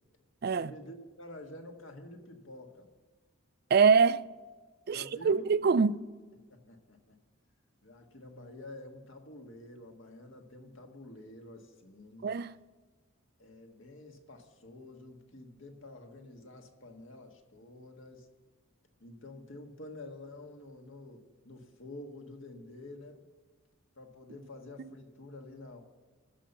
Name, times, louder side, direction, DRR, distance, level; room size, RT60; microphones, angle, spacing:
voice 1, 0.5-2.9 4.9-5.6 6.5-7.2 7.8-12.3 13.4-18.3 19.0-23.3 24.0-25.8, left 2 dB, 70° left, 1.5 m, -49 dB
voice 2, 3.7-4.2 4.9-6.0 12.2-12.5, right 5 dB, 50° right, 0.3 m, -24 dB
13.5 x 5.6 x 7.0 m
head